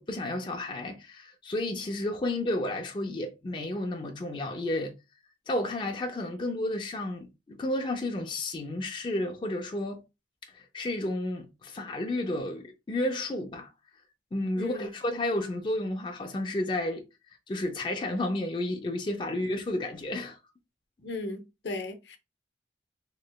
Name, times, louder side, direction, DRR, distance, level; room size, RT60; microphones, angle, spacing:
voice 1, 0.0-4.9 5.5-10.0 10.4-13.7 14.3-17.0 17.5-20.4, left 1 dB, 25° left, 0.3 m, -32 dB
voice 2, 14.6-14.9 21.0-22.2, left 2 dB, 75° left, 0.6 m, -36 dB
3.1 x 2.9 x 2.2 m
head